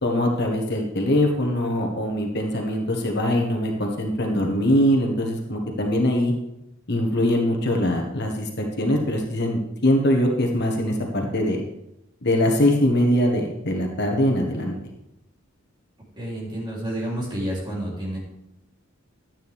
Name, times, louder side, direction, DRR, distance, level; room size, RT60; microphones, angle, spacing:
voice 1, 0.0-6.3 6.9-11.6 12.2-14.7, left 1 dB, 55° left, 2 dB, 1.6 m, -22 dB
voice 2, 16.2-18.2, right 1 dB, 25° right, -4 dB, 3.5 m, -29 dB
12.5 x 9.0 x 3.6 m, 0.86 s
head